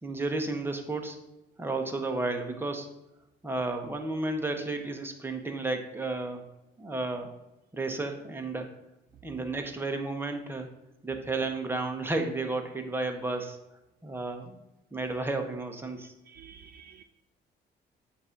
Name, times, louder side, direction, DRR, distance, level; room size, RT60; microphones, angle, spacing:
voice 1, 0.0-1.2 1.6-2.9 3.4-6.4 6.8-7.3 7.7-8.7 9.2-10.7 11.0-13.6 14.0-14.6 14.9-16.1, right 2 dB, 10° right, 4 dB, 0.9 m, -32 dB
voice 2, 16.0-17.0, right 7 dB, 50° right, 8 dB, 0.4 m, -52 dB
7.9 x 2.7 x 5.8 m, 0.94 s
cardioid pair, 90°, 20 cm